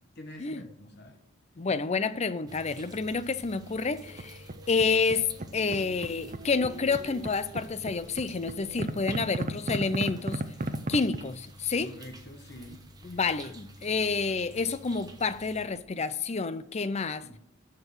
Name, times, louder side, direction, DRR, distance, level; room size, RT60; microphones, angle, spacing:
voice 1, 0.1-1.2 11.8-12.8 17.2-17.4, left 1 dB, 55° left, 1.2 m, -47 dB
voice 2, 1.6-4.4 4.7-10.4 10.9-11.9 13.0-17.2, left 4 dB, 30° left, 0.5 m, -29 dB
sound 1, 2.5-15.7, equal, 20° right, 1.1 m, -50 dB
sound 2, 4.0-5.1 5.4-11.2, right 2 dB, 35° right, 0.7 m, -35 dB
12.5 x 4.5 x 8.1 m
head